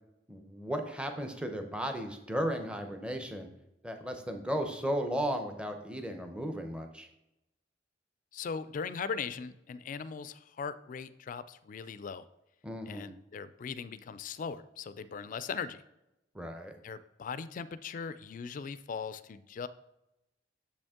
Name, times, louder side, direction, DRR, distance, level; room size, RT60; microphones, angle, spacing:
voice 1, 0.3-3.5 3.8-7.1 12.6-13.1 16.3-16.7, equal, 5° right, 5 dB, 0.6 m, -35 dB
voice 2, 8.3-12.3 12.9-15.8 16.8-19.7, left 6 dB, 45° left, 15 dB, 0.3 m, -39 dB
6.9 x 5.2 x 3.6 m, 0.89 s
head